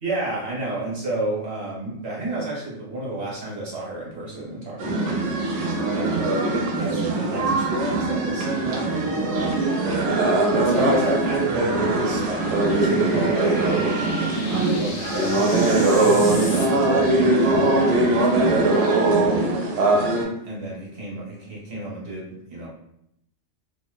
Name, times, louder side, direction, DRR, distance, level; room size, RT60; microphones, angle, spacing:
voice 1, 0.0-5.2 5.9-6.4 6.8-9.3 10.0-19.2 19.8-22.7, right 1 dB, 65° right, -5 dB, 1.1 m, -31 dB
sound 1, 4.8-20.3, right 2 dB, 85° right, 0.9 m, -21 dB
sound 2, 9.8-16.7, left 2 dB, 60° left, 0.6 m, -38 dB
2.7 x 2.0 x 2.2 m, 0.76 s
omnidirectional pair, 1.2 m